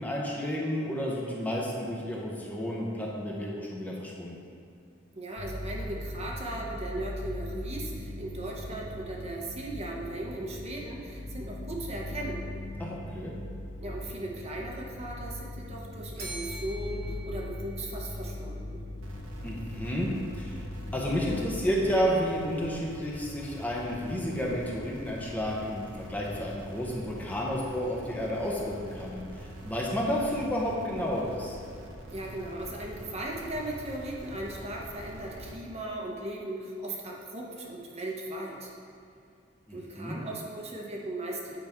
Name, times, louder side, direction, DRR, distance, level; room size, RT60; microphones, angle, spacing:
voice 1, 0.0-4.4 12.8-13.3 19.4-20.6 20.9-31.6 39.7-40.2, equal, 10° left, -4 dB, 0.7 m, -31 dB
voice 2, 5.1-12.4 13.8-18.8 32.1-38.7 39.7-41.6, right 1 dB, 35° right, -2 dB, 0.8 m, -37 dB
sound 1, 5.4-21.6, left 1 dB, 45° left, 1.3 m, -40 dB
Bell, 16.2-18.4, right 2 dB, 50° right, 1.3 m, -44 dB
sound 2, 19.0-35.5, right 1 dB, 75° right, 0.9 m, -45 dB
8.1 x 5.1 x 3.5 m, 2.3 s
head